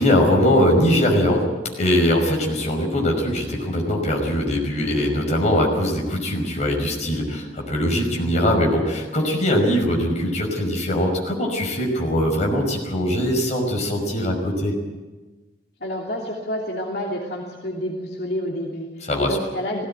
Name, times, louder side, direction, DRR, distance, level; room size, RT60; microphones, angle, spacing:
voice 1, 0.0-1.5 1.7-14.7 19.1-19.4, equal, 40° left, 1 dB, 5.5 m, -21 dB
voice 2, 15.8-19.9, equal, 65° left, -2 dB, 3.1 m, -29 dB
18.5 x 17.5 x 9.1 m, 1.2 s
head